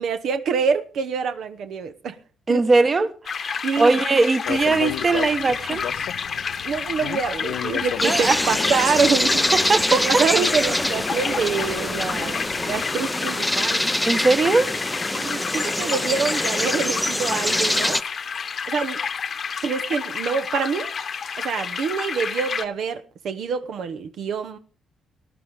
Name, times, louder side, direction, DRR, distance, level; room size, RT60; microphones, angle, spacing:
voice 1, 0.0-2.2 2.5-2.6 3.6-4.0 6.6-9.4 9.9-13.9 15.1-18.0 18.7-19.0 19.6-20.9 21.4-24.6, right 6 dB, 70° right, 0.9 m, -26 dB
voice 2, 2.5-5.9 8.0-8.4 9.5-10.3 12.2-12.4 14.0-14.7, right 3 dB, 35° right, 1.2 m, -20 dB
sound 1, 3.3-22.7, left 6 dB, 50° left, 1.0 m, -30 dB
sound 2, 4.4-13.0, left 12 dB, 85° left, 0.6 m, -36 dB
sound 3, 8.0-18.0, left 1 dB, 5° left, 0.5 m, -24 dB
18.0 x 11.0 x 3.5 m
cardioid pair, 90°, 0 cm